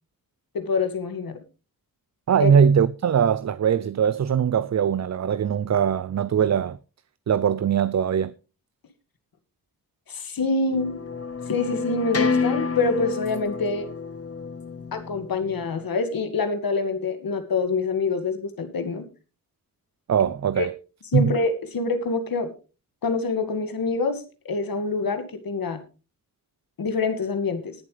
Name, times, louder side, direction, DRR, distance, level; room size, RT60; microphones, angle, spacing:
voice 1, 0.5-1.4 2.4-2.5 10.1-11.0 11.5-13.9 14.9-19.1 20.6-20.7 21.1-22.5 23.0-24.2 24.5-25.8 26.8-27.7, left 4 dB, 80° left, 2.0 m, -26 dB
voice 2, 2.3-6.8 7.3-8.3 20.1-20.7 21.1-21.3, right 7 dB, 50° right, 0.5 m, -21 dB
sound 1, 10.7-15.8, left 5 dB, 40° left, 1.2 m, -29 dB
20.0 x 7.4 x 3.3 m
wide cardioid pair, 85°, 35 cm